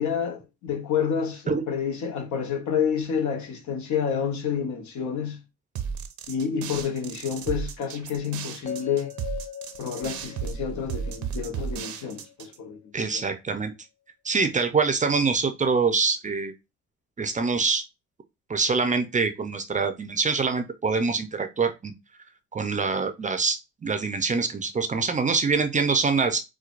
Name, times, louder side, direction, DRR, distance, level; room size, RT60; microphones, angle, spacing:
voice 1, 0.0-5.4 6.3-9.1 9.8-13.2, left 7 dB, 70° left, 1.0 m, -29 dB
sound 1, 5.7-12.6, right 7 dB, 70° right, 0.6 m, -34 dB
sound 2, 8.7-12.8, left 10 dB, 25° left, 0.6 m, -40 dB
voice 2, 12.9-13.7 14.2-16.5 17.2-17.8 18.5-21.9 22.5-26.4, right 4 dB, 25° right, 0.5 m, -25 dB
4.5 x 2.2 x 2.4 m
cardioid pair, 90°, 30 cm